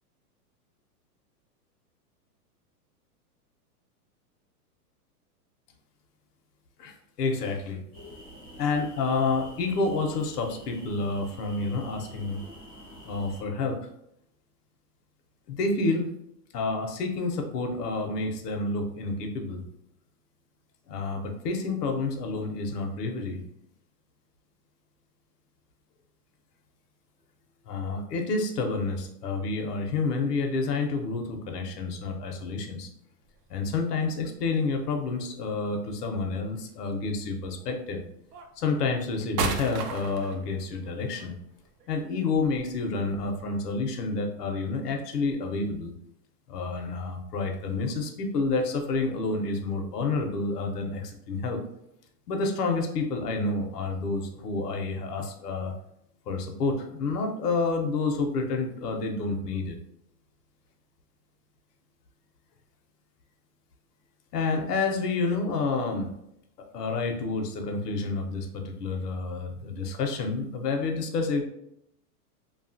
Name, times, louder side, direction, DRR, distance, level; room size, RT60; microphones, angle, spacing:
voice 1, 6.8-7.8 8.6-12.4 13.1-13.8 15.5-16.1 16.5-19.6 20.9-23.4 27.7-32.9 33.5-38.0 38.6-41.3 41.9-45.9 46.5-51.6 52.3-55.7 56.3-59.8 64.3-66.1 66.7-71.4, left 3 dB, 75° left, 3 dB, 0.8 m, -29 dB
sound 1, 7.9-13.4, equal, 10° left, 0.6 m, -47 dB
sound 2, 33.3-33.4 34.1-34.7 36.1-36.7 37.6-37.7 38.3-43.7, right 5 dB, 85° right, 0.6 m, -35 dB
2.7 x 2.3 x 2.6 m, 0.78 s
supercardioid pair, 175°, 47 cm